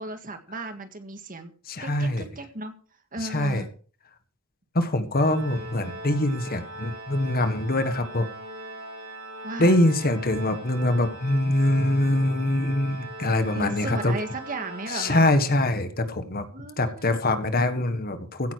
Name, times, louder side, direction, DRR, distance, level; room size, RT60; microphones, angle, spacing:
voice 1, 0.0-1.5 1.8-2.7 3.1-3.7 9.4-9.8 13.5-15.2 16.5-17.2, right 2 dB, 40° right, 7 dB, 1.8 m, -35 dB
voice 2, 1.7-2.2 3.3-3.6 4.7-8.3 9.6-14.1 14.9-16.5 16.8-18.5, left 1 dB, 45° left, 9 dB, 1.5 m, -24 dB
Organ, 5.1-15.9, right 1 dB, 80° right, 5.7 m, -40 dB
16.0 x 9.5 x 4.8 m, 0.42 s
head